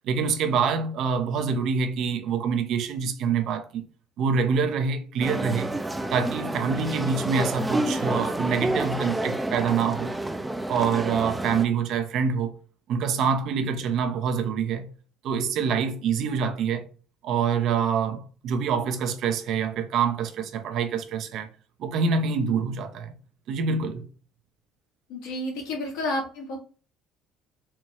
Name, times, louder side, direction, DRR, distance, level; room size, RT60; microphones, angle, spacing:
voice 1, 0.0-3.8 4.2-5.7 6.1-10.1 10.7-12.6 12.9-14.9 15.2-16.9 17.2-21.5 21.8-23.2 23.5-24.0, right 6 dB, 65° right, 0.6 m, -26 dB
sound 1, 5.2-11.6, right 1 dB, 10° right, 0.5 m, -29 dB
voice 2, 25.1-26.6, left 1 dB, 80° left, 1.6 m, -30 dB
4.4 x 2.3 x 3.0 m
supercardioid pair, 80°, 0 cm